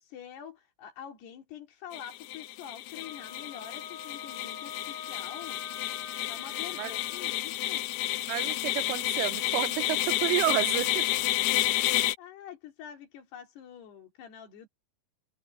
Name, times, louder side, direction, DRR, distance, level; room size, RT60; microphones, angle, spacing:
voice 1, 0.0-5.6 6.3-7.9 8.4-8.5 11.6-14.7, left 9 dB, 60° left, 5.2 m, -46 dB
sound 1, 1.9-12.2, left 15 dB, 85° left, 2.3 m, -30 dB
Wind instrument woodwind instrument, 3.0-7.4, left 7 dB, 40° left, 8.9 m, -44 dB
voice 2, 8.3-11.1, right 19 dB, 90° right, 3.3 m, -30 dB
omnidirectional pair, 5.6 m